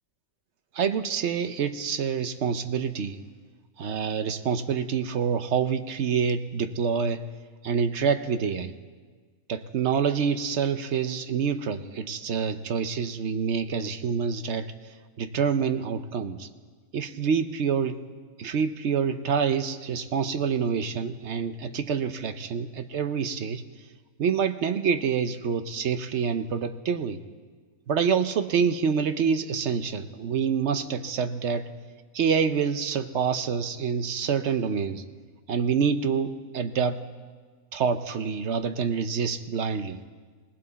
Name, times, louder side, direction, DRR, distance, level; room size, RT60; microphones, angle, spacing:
voice 1, 0.7-3.2 3.8-7.2 7.6-8.7 9.5-14.7 15.2-16.5 16.9-18.0 18.4-23.6 24.2-27.2 27.9-31.7 32.1-35.0 35.5-37.0 37.7-40.0, right 6 dB, 60° right, 10 dB, 0.9 m, -27 dB
19.0 x 18.5 x 4.0 m, 1.5 s
omnidirectional pair, 1.4 m